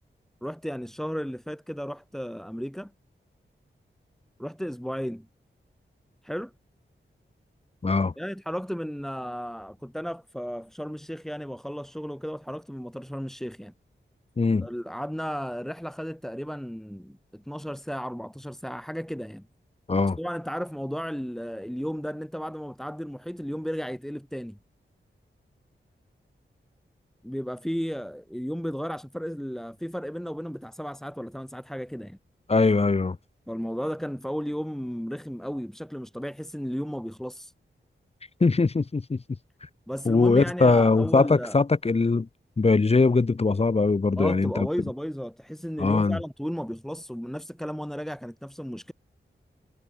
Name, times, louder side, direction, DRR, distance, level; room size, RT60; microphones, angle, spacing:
voice 1, 0.4-2.9 4.4-5.3 6.2-6.5 8.2-13.7 14.6-19.5 20.2-24.6 27.2-32.2 33.5-37.5 39.9-41.6 44.2-48.9, equal, ahead, 5.2 m, -34 dB
voice 2, 7.8-8.1 14.4-14.7 19.9-20.2 32.5-33.2 38.4-39.2 40.1-42.3 42.6-44.7 45.8-46.2, left 3 dB, 30° left, 0.7 m, -21 dB
cardioid pair, 50°, 20 cm